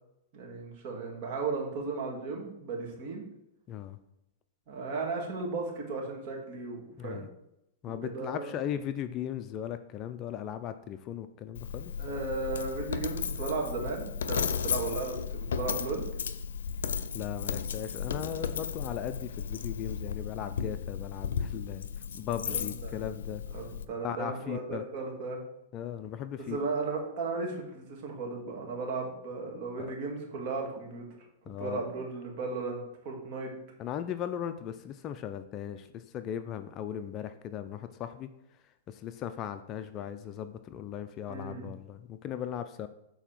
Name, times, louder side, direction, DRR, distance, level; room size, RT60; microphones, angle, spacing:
voice 1, 0.3-3.2 4.7-7.3 7.9-8.5 12.0-16.1 22.5-23.0 23.5-25.4 26.5-31.0 31.6-33.5 41.3-41.7, right 3 dB, 45° right, 0 dB, 2.2 m, -35 dB
voice 2, 3.7-4.0 7.0-7.3 7.8-11.9 17.1-21.9 22.1-23.4 24.0-24.8 25.7-26.6 29.8-29.9 31.5-31.8 33.8-38.3 38.9-42.9, left 10 dB, 30° left, 10 dB, 0.4 m, -37 dB
Coin (dropping), 11.5-23.8, left 7 dB, 90° left, 0.5 m, -35 dB
7.0 x 4.6 x 5.8 m, 0.84 s
hypercardioid pair, 150°, 0 cm